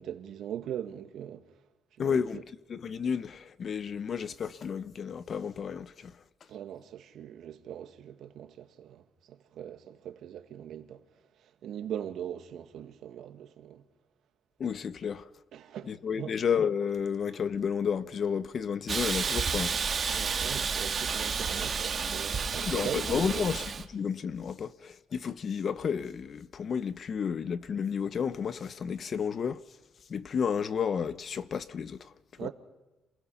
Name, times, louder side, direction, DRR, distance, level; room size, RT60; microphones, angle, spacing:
voice 1, 0.0-1.4 2.0-2.4 6.5-11.0 11.4-13.8 15.5-16.3 20.1-23.5 32.4-32.5, right 10 dB, 75° right, 2.0 m, -40 dB
voice 2, 2.0-2.4 2.7-6.1 14.6-15.3 15.9-19.7 21.2-21.3 22.6-29.6 30.1-32.5, left 7 dB, 50° left, 0.9 m, -32 dB
Hiss, 18.9-23.9, right 6 dB, 45° right, 1.7 m, -31 dB
27.5 x 20.0 x 5.8 m
cardioid pair, 90°, 0 cm